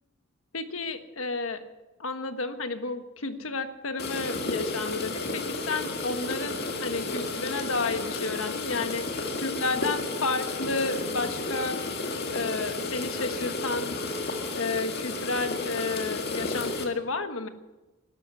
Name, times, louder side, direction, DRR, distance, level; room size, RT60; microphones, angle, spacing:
voice 1, 0.5-1.6 2.0-11.8 12.3-14.0 14.6-17.5, left 3 dB, 85° left, 8 dB, 1.4 m, -31 dB
sound 1, 4.0-16.9, left 3 dB, 50° left, 2.0 m, -32 dB
12.5 x 12.0 x 9.6 m, 1.1 s
head